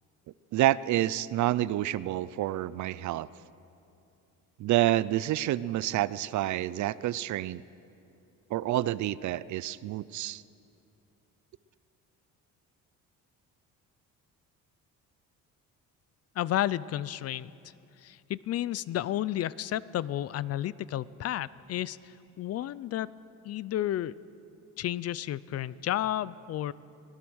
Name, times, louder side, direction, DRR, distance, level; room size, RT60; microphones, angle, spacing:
voice 1, 0.5-3.3 4.6-7.6 8.5-10.4, right 14 dB, 60° right, 18 dB, 0.5 m, -28 dB
voice 2, 16.4-17.5 18.0-23.1 23.4-24.1 24.8-26.7, left 13 dB, 50° left, 19 dB, 0.5 m, -32 dB
25.5 x 17.5 x 6.3 m, 2.7 s
cardioid pair, 145°, 33 cm